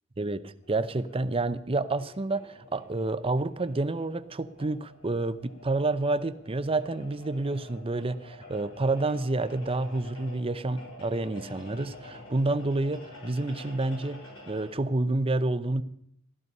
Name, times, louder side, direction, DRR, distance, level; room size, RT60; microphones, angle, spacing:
voice 1, 0.2-15.8, right 2 dB, 25° right, 12 dB, 0.6 m, -29 dB
sound 1, 0.6-14.7, left 1 dB, 85° left, 6.6 m, -49 dB
15.0 x 12.5 x 5.4 m, 0.70 s
head